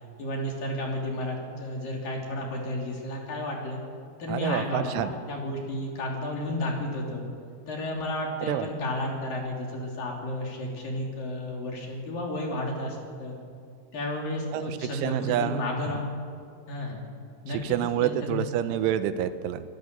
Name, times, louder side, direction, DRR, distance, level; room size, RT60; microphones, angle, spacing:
voice 1, 0.2-3.8 4.2-7.2 7.7-13.4 13.9-16.1 16.7-17.0 17.4-18.5, left 1 dB, 50° left, 0 dB, 4.7 m, -32 dB
voice 2, 4.3-5.1 8.5-8.7 14.5-15.6 17.6-19.6, right 11 dB, 85° right, 11 dB, 3.4 m, -28 dB
26.0 x 19.0 x 6.9 m, 2.3 s
omnidirectional pair, 5.5 m